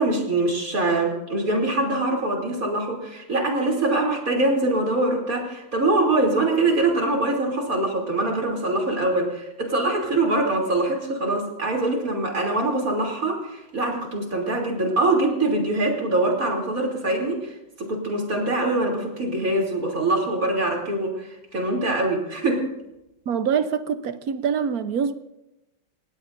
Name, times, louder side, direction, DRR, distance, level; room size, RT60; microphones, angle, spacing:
voice 1, 0.0-17.5 17.8-22.7, right 2 dB, 45° right, 3.6 m, -23 dB
voice 2, 23.3-25.1, right 7 dB, 60° right, 1.1 m, -24 dB
29.5 x 16.5 x 2.6 m
omnidirectional pair, 2.2 m